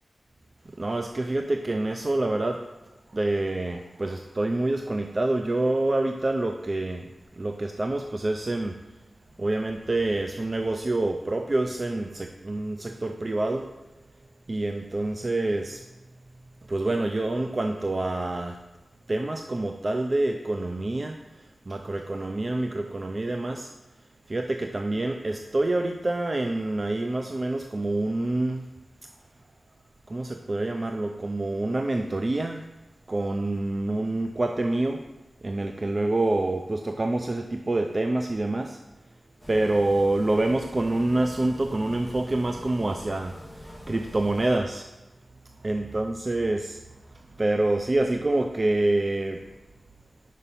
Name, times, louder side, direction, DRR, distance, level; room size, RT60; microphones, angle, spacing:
voice 1, 0.6-2.7 3.1-8.8 9.4-13.7 14.5-15.8 16.7-18.6 19.1-23.7 24.3-28.6 30.1-32.6 33.1-35.0 35.4-38.8 39.5-44.9 45.6-49.5, right 2 dB, 35° right, 5 dB, 0.4 m, -27 dB
sound 1, 39.4-44.6, equal, 10° right, 1.6 m, -44 dB
5.4 x 5.0 x 5.6 m, 1.0 s
wide cardioid pair, 100°, 0 cm